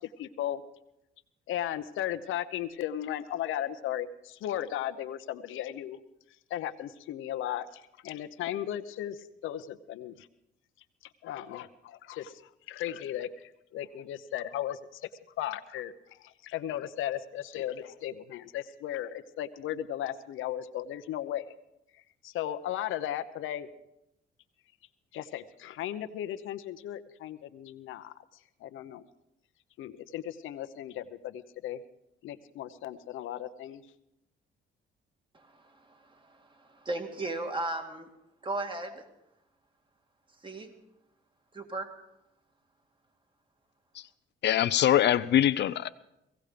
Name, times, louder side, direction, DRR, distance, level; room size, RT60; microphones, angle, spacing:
voice 1, 0.2-0.6 1.5-6.0 6.5-10.3 11.2-15.0 15.4-15.9 16.2-21.5 22.2-23.7 25.1-28.1 28.6-29.0 29.8-31.8 32.2-33.8, left 11 dB, 85° left, 9 dB, 0.9 m, -36 dB
voice 2, 35.3-38.1 38.4-39.0 40.4-40.7 41.5-41.9, right 2 dB, 25° right, 5 dB, 2.2 m, -36 dB
voice 3, 44.4-45.9, left 11 dB, 60° left, 14 dB, 0.6 m, -23 dB
17.5 x 16.5 x 5.1 m, 0.86 s
cardioid pair, 90°, 20 cm